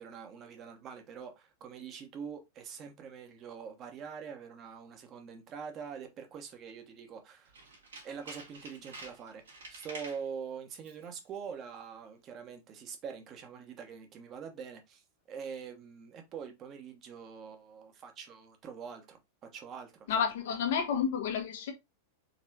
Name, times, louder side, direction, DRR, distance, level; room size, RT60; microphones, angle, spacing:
voice 1, 0.0-7.5 8.0-15.0 15.3-20.1, right 6 dB, 30° right, 1.2 m, -44 dB
Tools, 7.5-10.3 10.8-11.1 11.4-11.5, right 2 dB, 70° right, 1.9 m, -48 dB
voice 2, 20.1-21.7, left 7 dB, 55° left, 1.2 m, -30 dB
4.2 x 4.2 x 2.8 m
figure-of-eight pair, 90°, 0 cm